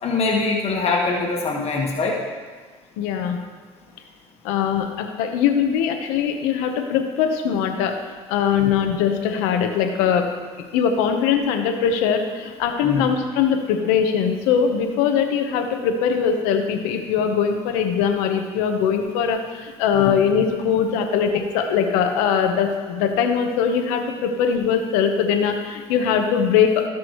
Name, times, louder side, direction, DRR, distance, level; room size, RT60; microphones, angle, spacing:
voice 1, 0.0-2.2 8.6-8.7 12.8-13.1 19.9-20.1, left 3 dB, 50° left, -1 dB, 1.6 m, -23 dB
voice 2, 3.0-3.4 4.4-7.9 8.3-10.2 10.7-26.9, left 7 dB, 90° left, 5 dB, 1.1 m, -21 dB
17.0 x 6.1 x 3.2 m, 1.5 s
supercardioid pair, 75°, 13 cm